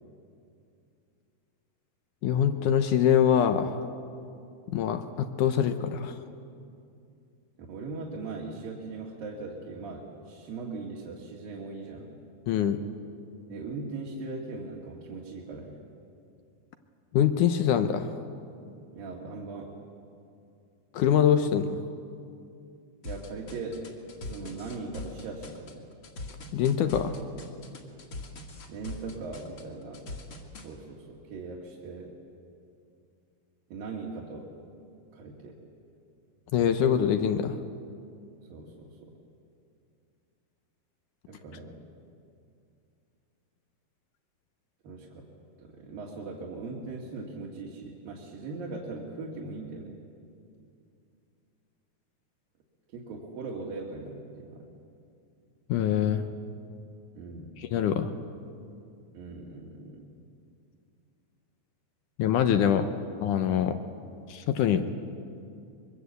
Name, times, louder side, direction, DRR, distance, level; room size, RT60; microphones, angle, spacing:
voice 1, 2.2-3.8 4.7-6.2 12.5-12.8 17.1-18.1 20.9-21.8 26.5-27.2 36.5-37.6 55.7-56.2 57.6-58.1 62.2-62.9 63.2-63.8 64.3-64.9, left 9 dB, 75° left, 8 dB, 2.0 m, -24 dB
voice 2, 7.7-12.1 13.5-15.8 18.9-19.7 23.0-23.9 24.2-25.8 28.7-30.0 30.5-32.1 33.7-34.5 35.1-35.6 38.5-39.1 41.3-41.8 44.8-45.3 45.6-50.0 52.9-54.7 57.2-57.6 59.1-60.1, right 3 dB, 65° right, -2 dB, 3.7 m, -39 dB
sound 1, 23.0-30.7, left 2 dB, 40° left, 2.6 m, -41 dB
24.5 x 23.0 x 8.2 m, 2.5 s
omnidirectional pair, 4.4 m